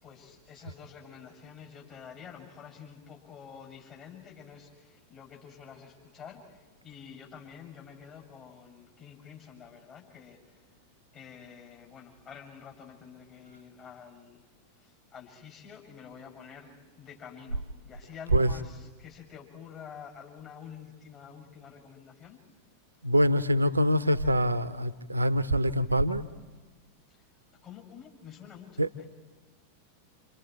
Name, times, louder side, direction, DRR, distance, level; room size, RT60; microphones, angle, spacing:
voice 1, 0.0-10.6 11.1-14.4 14.8-22.4 27.1-27.2 27.6-29.1, left 7 dB, 35° left, -1 dB, 6.4 m, -48 dB
voice 2, 18.3-18.6 23.0-26.3 28.8-28.9, equal, 80° right, 15 dB, 0.8 m, -24 dB
28.5 x 28.0 x 4.6 m, 1.3 s
figure-of-eight pair, 90°, 0 cm